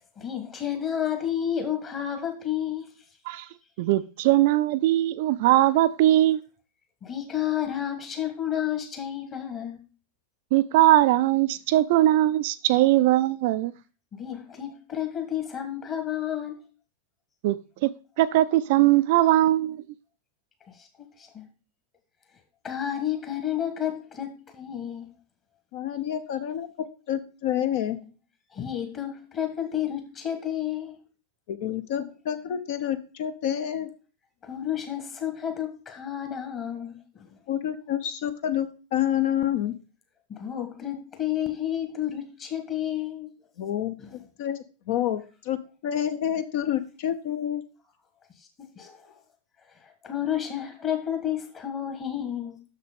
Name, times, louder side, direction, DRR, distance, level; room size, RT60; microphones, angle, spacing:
voice 1, 0.2-2.9 7.0-9.8 14.1-16.6 20.7-20.9 21.2-21.4 22.6-25.1 28.5-31.0 34.4-37.3 40.3-43.3 44.0-44.1 48.8-49.1 50.0-52.6, left 10 dB, 30° left, 1.6 m, -31 dB
voice 2, 3.8-6.4 10.5-13.7 17.4-17.9 18.2-19.8, right 15 dB, 50° right, 0.4 m, -20 dB
voice 3, 25.7-28.0 31.5-33.9 37.5-39.7 43.6-43.9 44.4-44.6 44.9-47.6, left 10 dB, 50° left, 0.7 m, -28 dB
6.6 x 6.6 x 5.0 m
figure-of-eight pair, 90°, 0 cm